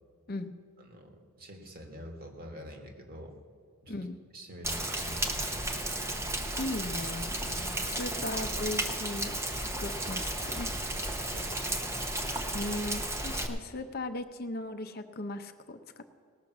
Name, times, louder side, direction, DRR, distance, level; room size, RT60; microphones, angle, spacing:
voice 1, 0.8-3.4 3.8-4.0 4.3-5.7 7.4-7.7 11.2-11.6, equal, 45° right, 3 dB, 1.8 m, -46 dB
voice 2, 3.9-4.2 6.6-7.3 7.9-10.7 12.5-16.1, left 2 dB, 45° left, 8 dB, 0.7 m, -37 dB
Rain, 4.6-13.5, right 1 dB, 10° right, 0.8 m, -33 dB
18.5 x 6.5 x 7.2 m, 2.1 s
head